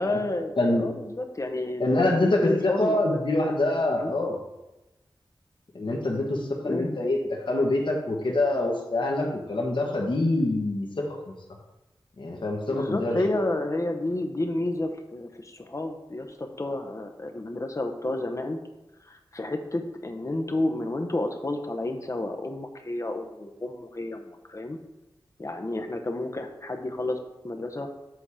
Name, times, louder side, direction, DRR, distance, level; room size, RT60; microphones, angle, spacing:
voice 1, 0.0-3.2 4.0-4.1 6.6-7.0 12.7-18.6 19.0-24.8 25.4-27.2 27.4-27.9, left 2 dB, 35° left, 5 dB, 0.9 m, -30 dB
voice 2, 0.6-0.9 1.8-4.4 5.7-11.3 12.2-13.2, left 2 dB, 65° left, -1 dB, 1.5 m, -25 dB
7.9 x 4.3 x 4.9 m, 1.0 s
wide cardioid pair, 65°, 9 cm